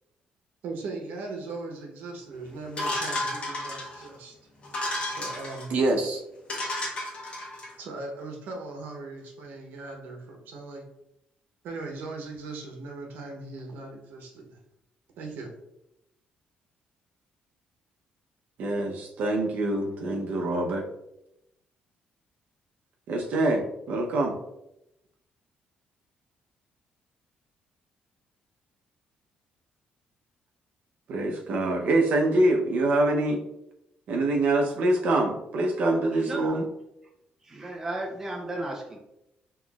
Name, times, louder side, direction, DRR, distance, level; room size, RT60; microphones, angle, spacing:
voice 1, 0.6-4.3 5.2-5.7 7.8-10.8 11.6-14.6 15.2-15.5, right 3 dB, 85° right, 2 dB, 0.9 m, -39 dB
sound 1, 2.8-4.1 4.6-5.7 6.1-6.2 6.5-7.7, left 1 dB, 35° left, 1.1 m, -32 dB
voice 2, 5.7-6.2 18.6-20.8 23.1-24.3 31.1-33.4 34.1-36.6, right 2 dB, 55° right, 2 dB, 0.8 m, -25 dB
voice 3, 36.1-36.6 37.4-39.0, right 1 dB, 15° right, 0 dB, 0.6 m, -34 dB
5.8 x 3.1 x 2.4 m, 0.85 s
cardioid pair, 165°, 3 cm